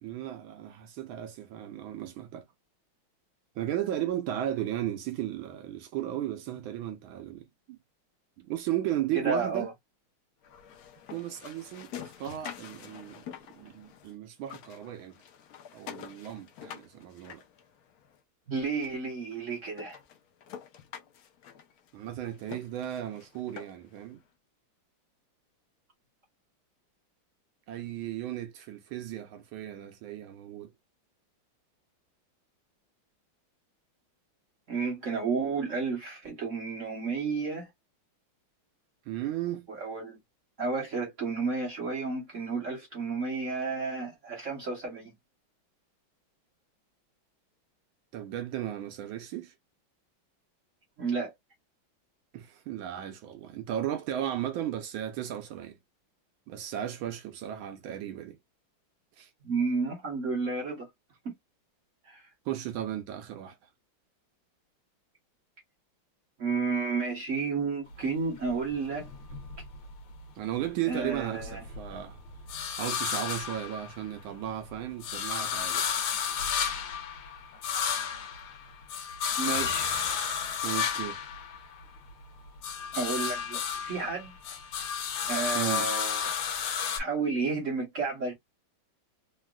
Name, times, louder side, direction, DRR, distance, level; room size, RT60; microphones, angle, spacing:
voice 1, 0.0-2.4 3.6-7.8 8.4-9.7 11.1-15.2 15.7-17.4 21.9-24.2 27.7-30.7 39.1-39.7 48.1-49.5 52.3-55.8 56.5-58.4 59.2-59.3 62.4-63.6 70.4-72.2 72.7-75.9 80.6-81.3 85.5-85.9, right 12 dB, 80° right, 1.4 m, -35 dB
voice 2, 9.1-9.7 18.5-20.0 34.7-37.7 39.7-40.2 40.6-45.1 51.0-51.3 59.4-60.9 61.2-61.3 62.0-62.3 66.4-69.1 70.9-71.6 79.4-80.1 82.9-84.4 85.3-86.3 87.0-88.3, right 4 dB, 45° right, 1.2 m, -31 dB
sound 1, 10.4-14.1 14.4-18.2 18.8-18.9 19.4-19.5 19.8-24.0, left 9 dB, 70° left, 0.9 m, -47 dB
sound 2, 67.9-70.3 70.7-74.3 74.7-82.1 82.4-87.0, left 7 dB, 85° left, 1.6 m, -32 dB
3.8 x 2.4 x 2.2 m
omnidirectional pair, 2.2 m